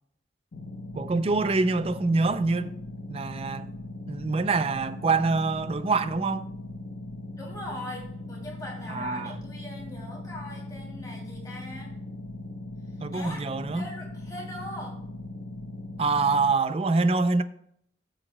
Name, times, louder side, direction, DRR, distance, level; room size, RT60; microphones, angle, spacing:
sound 1, 0.5-16.5, left 2 dB, 75° left, 0.9 m, -39 dB
voice 1, 0.9-2.7 3.1-3.7 4.1-6.5 8.9-9.4 13.0-13.9 16.0-17.4, right 3 dB, 30° right, 0.4 m, -25 dB
voice 2, 7.4-11.9 13.1-13.4 13.7-15.0, left 1 dB, 20° left, 2.7 m, -41 dB
14.0 x 7.9 x 2.2 m
head